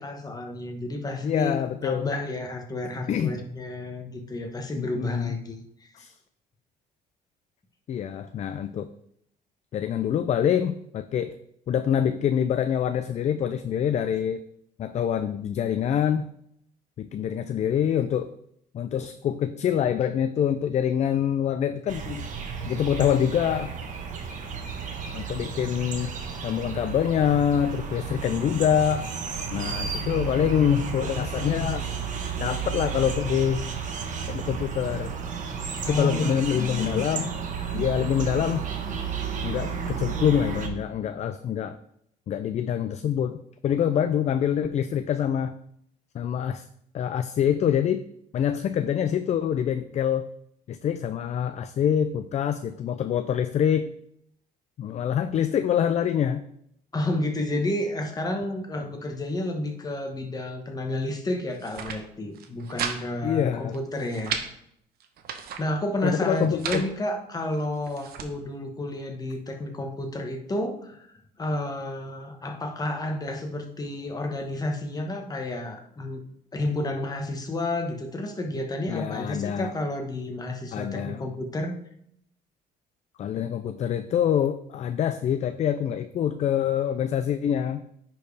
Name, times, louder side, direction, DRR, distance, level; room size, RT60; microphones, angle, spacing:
voice 1, 0.0-1.5 1.8-5.6 35.8-37.2 56.9-64.4 65.6-71.0 71.4-76.2 76.5-81.8, left 1 dB, 20° left, 4 dB, 1.2 m, -31 dB
voice 2, 1.2-2.1 3.1-3.4 4.7-5.3 5.9-6.1 7.9-8.9 9.7-11.4 11.7-14.4 14.8-16.3 17.0-18.3 18.7-22.3 22.7-23.7 25.1-26.1 26.4-29.1 29.5-31.9 32.4-33.6 34.3-35.1 35.9-37.3 37.7-38.7 39.4-41.8 42.3-45.5 46.1-46.6 46.9-48.1 48.3-50.3 50.7-53.9 54.8-56.5 63.2-63.7 66.0-66.9 78.9-79.7 80.7-81.2 83.2-87.8, left 9 dB, 40° left, 10 dB, 0.4 m, -25 dB
sound 1, 21.9-40.7, right 6 dB, 50° right, 1.3 m, -32 dB
sound 2, 61.5-62.0 62.3-63.0 63.3-63.4 63.7-64.5 65.0-65.6 66.3-66.9 67.5-68.3, right 7 dB, 65° right, 1.0 m, -34 dB
10.0 x 4.6 x 3.3 m, 0.72 s
cardioid pair, 110°, 17 cm